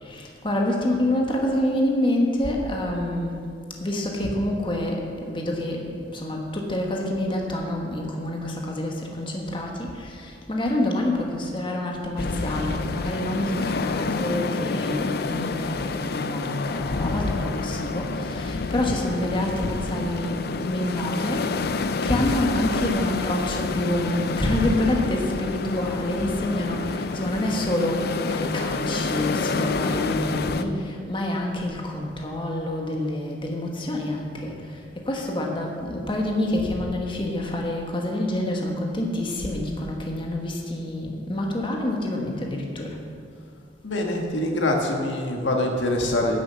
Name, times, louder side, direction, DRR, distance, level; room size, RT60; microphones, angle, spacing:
voice 1, 0.0-3.3 3.8-5.8 6.1-34.5 35.0-43.0, left 1 dB, 25° left, 0 dB, 1.4 m, -27 dB
sound 1, 12.2-30.6, left 3 dB, 55° left, 0.5 m, -28 dB
voice 2, 43.8-46.4, left 1 dB, 85° left, 1 dB, 1.7 m, -24 dB
11.0 x 7.4 x 7.6 m, 2.2 s
head